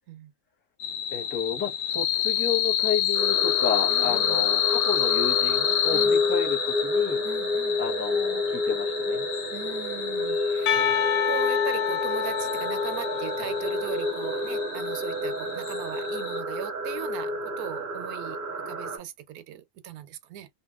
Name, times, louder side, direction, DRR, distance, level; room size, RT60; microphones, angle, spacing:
sound 1, 0.8-16.4, left 11 dB, 90° left, 1.2 m, -29 dB
voice 1, 1.1-7.2 7.8-9.3, left 7 dB, 10° left, 0.5 m, -31 dB
sound 2, 3.1-19.0, left 2 dB, 45° right, 0.8 m, -29 dB
voice 2, 3.9-4.5 5.9-6.2 7.2-7.8 9.5-10.9 11.2-18.4 18.7-20.5, right 10 dB, 80° right, 1.0 m, -39 dB
Percussion, 10.7-14.6, left 9 dB, 70° left, 0.9 m, -28 dB
2.8 x 2.5 x 2.3 m
omnidirectional pair, 1.6 m